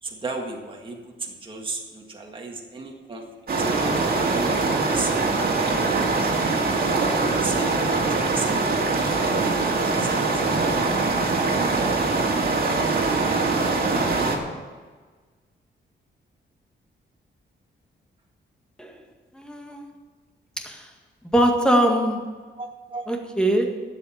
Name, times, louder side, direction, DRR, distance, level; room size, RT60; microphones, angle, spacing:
voice 1, 0.0-3.2 4.1-5.1 7.1-8.7 9.4-10.4 22.6-23.1, right 3 dB, 25° right, -1 dB, 1.9 m, -35 dB
sound 1, 3.5-14.4, right 3 dB, 50° right, 2.4 m, -23 dB
voice 2, 19.3-19.8 20.6-20.9 21.3-22.2 23.1-23.7, right 1 dB, 5° left, 2 dB, 1.9 m, -22 dB
12.5 x 8.4 x 7.5 m, 1.4 s
wide cardioid pair, 125°, 19 cm